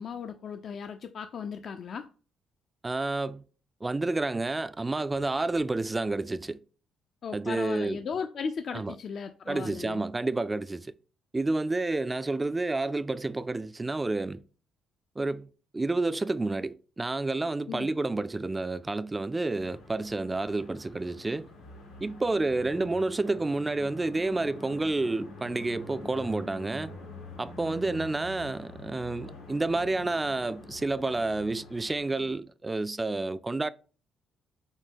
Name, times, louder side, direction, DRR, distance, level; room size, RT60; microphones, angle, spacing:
voice 1, 0.0-2.1 7.2-10.0 17.7-17.9, left 6 dB, 60° left, 0.3 m, -36 dB
voice 2, 2.8-3.4 3.8-6.6 7.3-8.0 8.7-9.0 9.5-10.9 11.3-14.4 15.2-21.5 22.0-26.9 27.4-33.7, right 2 dB, 25° right, 0.3 m, -30 dB
sound 1, 19.6-32.3, left 2 dB, 90° left, 1.1 m, -46 dB
6.1 x 2.1 x 3.6 m
hypercardioid pair, 55°, 0 cm